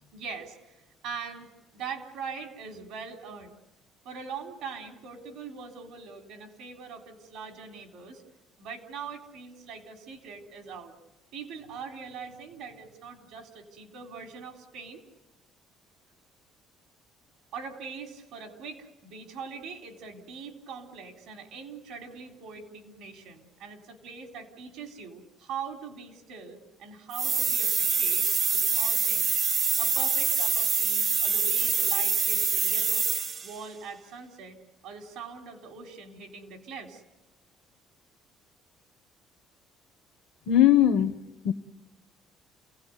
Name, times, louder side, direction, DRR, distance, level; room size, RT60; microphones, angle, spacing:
voice 1, 0.0-3.6 4.0-8.2 8.6-10.9 11.3-15.0 17.5-28.3 28.5-29.3 29.8-33.1 33.4-37.0, right 5 dB, 85° right, 3.8 m, -42 dB
sound 1, 27.1-33.6, right 5 dB, 40° right, 0.8 m, -25 dB
voice 2, 40.5-41.5, left 11 dB, 85° left, 1.3 m, -21 dB
29.0 x 17.5 x 9.5 m
cardioid pair, 110°, 0 cm